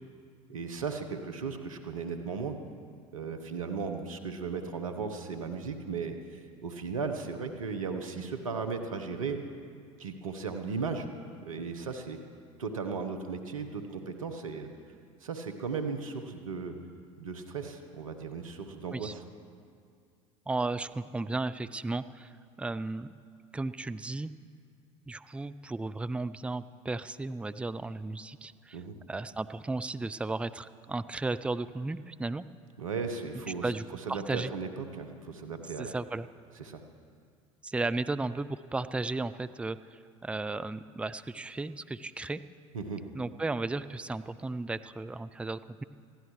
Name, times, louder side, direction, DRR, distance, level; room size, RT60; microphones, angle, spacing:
voice 1, 0.5-2.6 3.1-9.4 10.0-11.1 11.4-12.2 12.6-14.7 15.2-16.7 17.2-19.2 28.7-28.9 32.8-35.9 36.6-36.8 42.7-43.0, right 5 dB, 85° right, 6 dB, 1.0 m, -36 dB
voice 2, 20.5-22.3 22.6-23.1 23.5-24.3 25.1-28.8 29.1-32.4 33.6-34.5 35.8-36.3 37.6-42.4 43.1-45.8, right 3 dB, 5° right, 14 dB, 0.4 m, -34 dB
21.5 x 15.0 x 3.2 m, 2.2 s
hypercardioid pair, 75°, 17 cm